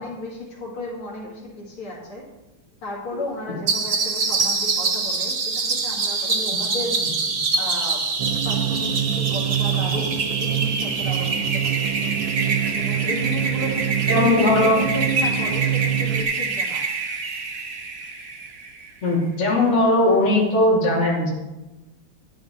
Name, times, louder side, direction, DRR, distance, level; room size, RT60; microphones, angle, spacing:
voice 1, 0.0-2.2 2.8-7.0 7.6-8.1 8.4-11.9 12.7-16.8, left 1 dB, 75° left, -4 dB, 3.1 m, -34 dB
sound 1, 3.7-18.9, right 4 dB, 45° right, 0.9 m, -25 dB
voice 2, 6.2-6.6 14.1-14.8 19.0-21.3, left 1 dB, 30° left, -5 dB, 2.8 m, -19 dB
sound 2, 8.2-16.2, right 10 dB, 75° right, 1.4 m, -26 dB
11.0 x 9.8 x 3.6 m, 1.1 s
omnidirectional pair, 2.4 m